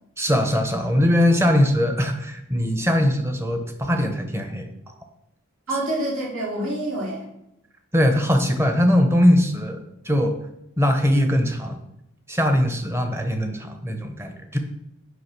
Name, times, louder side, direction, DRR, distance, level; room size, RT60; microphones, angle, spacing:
voice 1, 0.2-4.7 7.9-10.3 10.8-11.8 12.3-14.6, left 1 dB, 10° right, 5 dB, 0.9 m, -21 dB
voice 2, 5.7-7.3, right 1 dB, 75° right, -5 dB, 3.6 m, -27 dB
8.4 x 5.4 x 6.1 m, 0.84 s
head